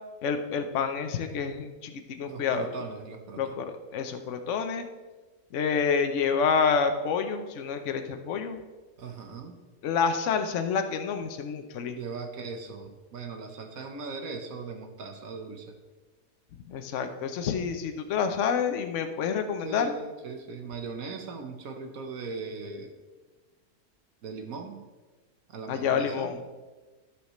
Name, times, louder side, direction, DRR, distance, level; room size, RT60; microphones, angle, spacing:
voice 1, 0.2-2.7 3.3-3.6 3.9-4.8 5.5-8.6 9.8-12.0 16.7-19.9 25.7-26.4, left 6 dB, 60° left, 7 dB, 1.0 m, -28 dB
voice 2, 2.3-3.5 9.0-9.6 11.9-15.8 19.6-22.9 24.2-24.9 25.5-26.3, right 4 dB, 65° right, 5 dB, 1.4 m, -39 dB
14.5 x 6.5 x 3.1 m, 1.3 s
omnidirectional pair, 1.6 m